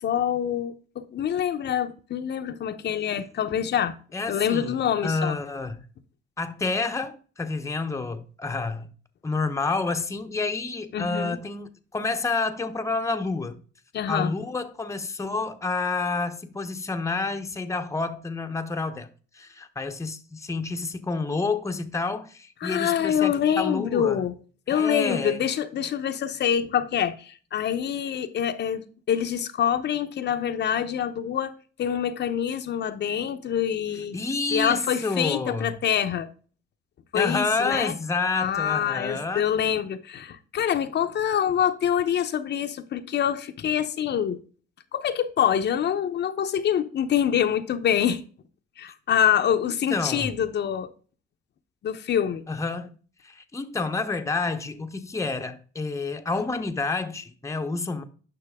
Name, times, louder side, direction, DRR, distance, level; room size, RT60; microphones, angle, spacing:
voice 1, 0.0-3.9 4.3-5.4 10.9-11.4 13.9-14.3 22.6-24.4 24.7-28.8 29.1-31.5 31.8-34.2 34.5-36.3 37.1-37.9 38.3-44.4 44.9-48.2 48.8-50.9 51.8-52.4, left 9 dB, 60° left, 0.7 m, -25 dB
voice 2, 4.1-5.8 6.4-8.9 9.2-13.6 14.1-19.1 19.3-24.2 24.7-25.4 34.1-35.8 37.1-39.5 49.9-50.4 52.5-52.9 53.2-58.0, left 3 dB, 15° left, 0.8 m, -29 dB
9.8 x 5.7 x 3.5 m
cardioid pair, 90°, 20 cm